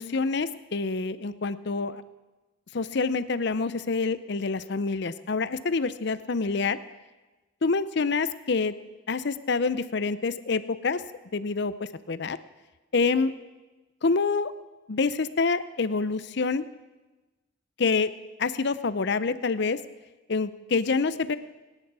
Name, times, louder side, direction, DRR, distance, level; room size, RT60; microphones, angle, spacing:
voice 1, 0.0-2.0 2.7-6.8 7.6-8.7 9.1-11.0 11.3-12.4 12.9-13.3 14.0-14.5 14.9-16.6 17.8-18.1 18.4-19.8 20.3-21.4, left 4 dB, 55° left, 14 dB, 0.6 m, -27 dB
24.0 x 10.0 x 4.8 m, 1.1 s
head